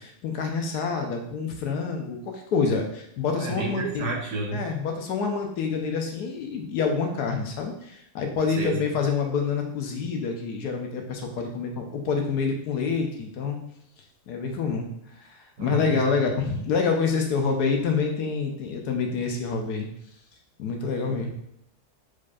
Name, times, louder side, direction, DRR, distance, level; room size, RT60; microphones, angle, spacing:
voice 1, 0.0-4.1 4.5-13.6 14.3-14.9 15.2-19.9 20.6-21.3, left 5 dB, 85° left, 3 dB, 1.3 m, -27 dB
voice 2, 3.4-4.6 8.5-8.8 15.6-16.2, right 3 dB, 70° right, 0 dB, 1.3 m, -30 dB
4.8 x 4.4 x 2.4 m, 0.74 s
omnidirectional pair, 1.7 m